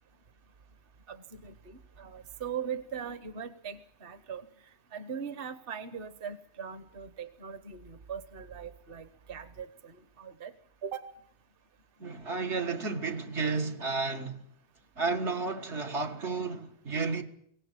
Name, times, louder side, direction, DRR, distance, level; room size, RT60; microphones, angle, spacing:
voice 1, 1.1-4.4 4.9-10.5 10.8-11.1, right 7 dB, 55° right, 1.2 m, -40 dB
voice 2, 12.0-14.4 15.0-17.2, right 4 dB, 85° right, 2.1 m, -32 dB
23.5 x 17.5 x 8.9 m
omnidirectional pair, 1.2 m